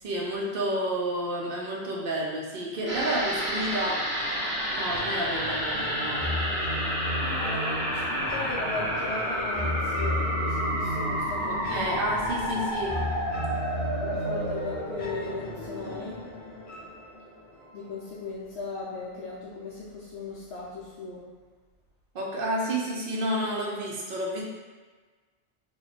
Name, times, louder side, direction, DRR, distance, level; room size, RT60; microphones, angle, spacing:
voice 1, 0.0-4.1 4.7-6.3 11.5-13.0 22.1-24.4, right 1 dB, 55° right, -2 dB, 0.8 m, -30 dB
sound 1, 2.9-17.5 17.8-17.9, equal, 10° right, 0.7 m, -31 dB
sound 2, 4.9-17.9, left 1 dB, 50° left, 0.4 m, -35 dB
voice 2, 7.2-12.0 14.0-16.2 17.7-21.3, left 3 dB, 65° left, -6 dB, 0.8 m, -37 dB
3.1 x 2.3 x 4.0 m, 1.4 s
omnidirectional pair, 1.2 m